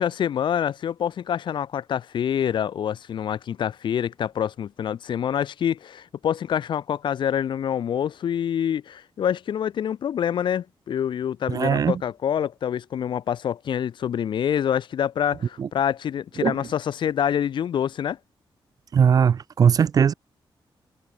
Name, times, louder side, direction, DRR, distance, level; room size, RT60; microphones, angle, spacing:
voice 1, 0.0-18.2, left 9 dB, 60° left, 0.6 m, -26 dB
voice 2, 11.5-12.0 15.6-15.7 16.4-16.6 18.9-20.1, right 7 dB, 45° right, 0.4 m, -19 dB
wide cardioid pair, 145°, 9 cm